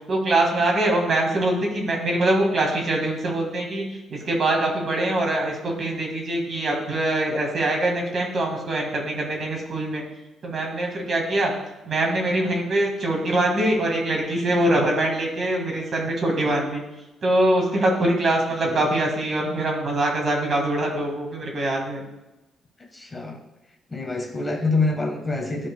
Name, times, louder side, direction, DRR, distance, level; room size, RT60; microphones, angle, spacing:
voice 1, 0.1-3.8 4.1-10.0 10.4-11.5 11.9-16.8 17.2-22.0, right 1 dB, 50° right, 1 dB, 1.8 m, -23 dB
voice 2, 22.8-23.4 23.9-25.7, left 3 dB, 20° left, 1 dB, 1.3 m, -26 dB
11.5 x 4.8 x 2.2 m, 1.0 s
cardioid pair, 90°, 0 cm